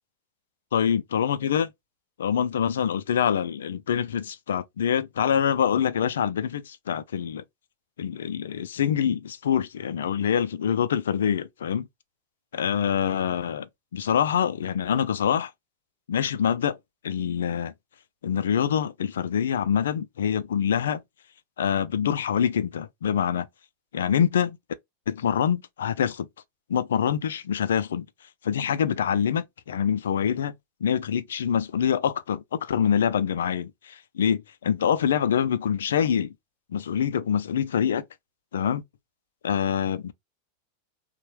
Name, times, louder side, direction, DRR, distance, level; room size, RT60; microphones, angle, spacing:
voice 1, 0.7-1.7 2.2-7.4 8.0-11.9 12.5-15.5 16.1-16.8 17.0-17.7 18.2-21.0 21.6-23.5 23.9-24.6 25.1-26.3 26.7-28.1 28.4-30.5 30.8-36.3 36.7-38.0 38.5-38.8 39.4-40.1, left 8 dB, 65° left, 0.3 m, -25 dB
3.0 x 2.1 x 2.9 m
figure-of-eight pair, 90°, 0 cm